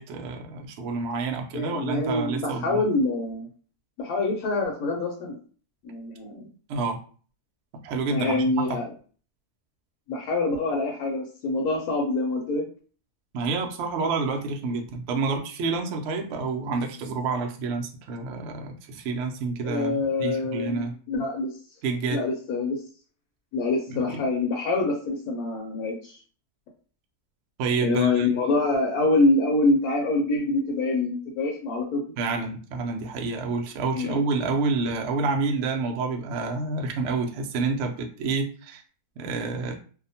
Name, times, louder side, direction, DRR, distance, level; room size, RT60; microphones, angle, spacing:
voice 1, 0.0-2.8 6.7-7.0 7.8-8.8 13.3-20.9 21.8-22.2 23.9-24.2 27.6-28.3 32.2-38.8 39.2-39.7, right 4 dB, 70° right, 3 dB, 0.6 m, -28 dB
voice 2, 1.5-3.5 4.0-5.4 5.8-6.5 8.1-8.9 10.1-12.6 19.6-21.5 22.1-22.8 23.5-26.2 27.8-32.0 33.9-34.2, left 2 dB, 75° left, 0 dB, 1.1 m, -25 dB
2.7 x 2.0 x 2.7 m, 0.41 s
omnidirectional pair, 1.7 m